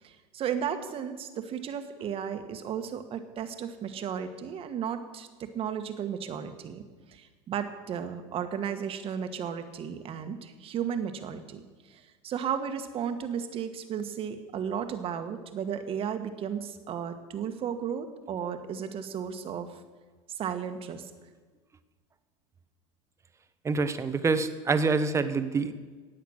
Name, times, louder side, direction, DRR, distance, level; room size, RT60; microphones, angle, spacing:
voice 1, 0.0-6.8 7.1-11.6 11.9-19.8 20.3-21.1, right 8 dB, 40° right, 8 dB, 1.4 m, -34 dB
voice 2, 23.6-25.8, right 4 dB, 20° right, 11 dB, 1.0 m, -26 dB
15.0 x 9.1 x 6.4 m, 1.4 s
supercardioid pair, 120°, 15 cm